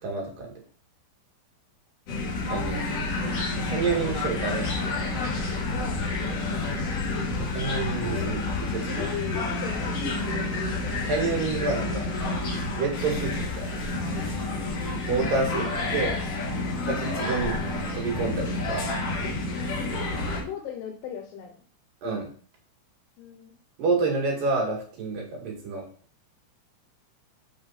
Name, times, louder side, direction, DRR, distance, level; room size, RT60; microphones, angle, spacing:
voice 1, 0.0-0.5 2.4-4.9 7.5-9.1 11.0-12.1 12.8-13.7 14.2-14.3 15.1-15.7 15.9-16.1 16.8-17.6 17.9-18.9 22.0-22.3 23.8-25.8, right 4 dB, 80° right, 0 dB, 3.8 m, -29 dB
sound 1, 2.1-20.4, left 2 dB, 50° left, 2.5 m, -29 dB
voice 2, 5.7-6.0 8.9-10.3 15.5-16.3 20.4-21.6 23.2-23.5, left 8 dB, 85° left, 3 dB, 2.6 m, -38 dB
7.7 x 5.3 x 4.2 m, 0.43 s
omnidirectional pair, 3.9 m